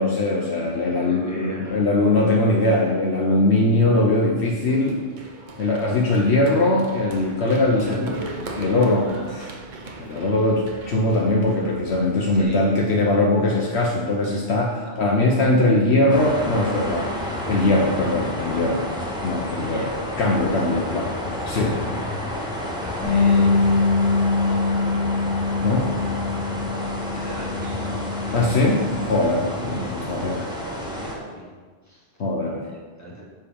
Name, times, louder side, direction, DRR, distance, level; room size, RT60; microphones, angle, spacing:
voice 1, 0.0-5.0 5.6-8.1 8.6-9.5 10.0-18.8 19.2-19.9 20.2-21.0 21.5-21.8 25.6-25.9 28.3-30.4 32.2-32.6, left 2 dB, 65° left, -1 dB, 1.1 m, -21 dB
voice 2, 0.8-1.9 7.7-8.4 12.3-12.8 14.8-15.2 19.5-20.1 20.5-21.3 21.8-22.1 23.0-23.9 24.3-24.7 25.8-26.3 26.7-28.4 29.7-32.1 32.6-33.2, right 1 dB, 15° left, -5 dB, 2.1 m, -39 dB
Run, 4.7-12.4, right 2 dB, 45° right, 0.9 m, -40 dB
sound 1, 16.1-31.2, left 1 dB, 5° right, 1.3 m, -30 dB
Bass guitar, 23.0-29.3, left 4 dB, 75° right, 1.7 m, -23 dB
9.6 x 3.6 x 6.9 m, 1.5 s
omnidirectional pair, 1.2 m